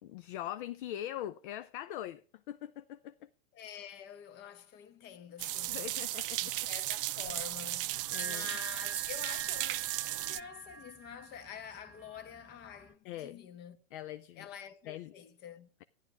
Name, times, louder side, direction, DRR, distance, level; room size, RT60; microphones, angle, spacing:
voice 1, 0.0-3.3 5.7-6.5 8.1-8.5 13.0-13.4 13.9-14.5 14.9-15.1, left 12 dB, 55° left, 0.6 m, -42 dB
voice 2, 3.5-6.0 6.4-13.8 14.4-15.7, left 9 dB, 35° left, 1.1 m, -48 dB
sound 1, 5.4-10.4, right 16 dB, 60° right, 0.5 m, -35 dB
sound 2, 7.9-12.9, right 5 dB, 5° right, 0.5 m, -46 dB
13.0 x 10.5 x 3.5 m
hypercardioid pair, 125°, 31 cm